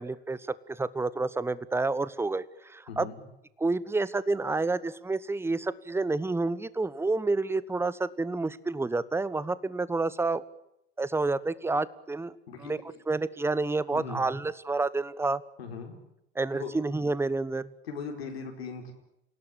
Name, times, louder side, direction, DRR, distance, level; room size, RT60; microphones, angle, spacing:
voice 1, 0.0-3.1 3.6-10.4 11.0-12.3 12.6-12.8 13.1-15.4 16.3-17.7, right 3 dB, 10° right, 18 dB, 1.1 m, -29 dB
voice 2, 2.9-3.2 12.5-12.7 13.9-14.3 15.6-16.0 16.5-16.7 17.8-18.9, left 4 dB, 75° left, 3 dB, 4.7 m, -38 dB
28.0 x 17.5 x 8.6 m, 0.83 s
figure-of-eight pair, 70°, 31 cm